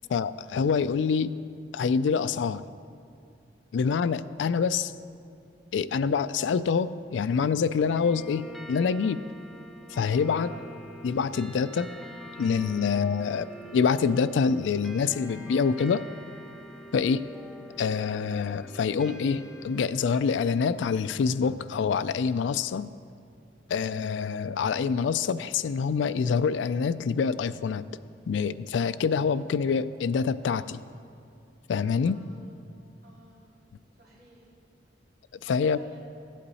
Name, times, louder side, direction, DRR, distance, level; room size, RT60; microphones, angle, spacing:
voice 1, 0.1-1.3 1.7-2.7 3.7-4.9 5.7-9.2 9.9-10.5 11.0-11.9 12.4-16.0 16.9-17.3 17.8-22.9 23.7-27.8 28.3-30.8 31.7-32.2 35.4-35.8, left 6 dB, 85° left, 15 dB, 0.3 m, -26 dB
sound 1, 7.8-20.2, equal, ahead, 0.7 m, -45 dB
voice 2, 32.0-32.5 33.0-33.5 34.0-34.5 35.5-36.1, right 1 dB, 55° right, -5 dB, 2.8 m, -53 dB
15.5 x 8.4 x 4.1 m, 2.4 s
head